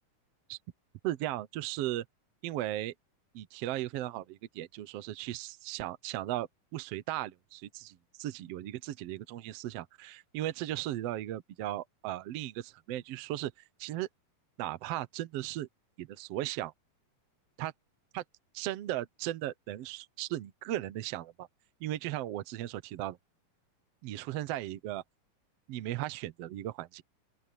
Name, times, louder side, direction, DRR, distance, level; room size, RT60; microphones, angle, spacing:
voice 1, 1.0-2.0 2.4-2.9 3.3-13.5 13.8-14.1 14.6-15.7 16.0-16.7 17.6-17.7 18.1-18.2 18.5-21.5 21.8-23.2 24.0-25.0 25.7-27.0, right 14 dB, 75° right, 1.5 m, -36 dB
open air
omnidirectional pair, 3.8 m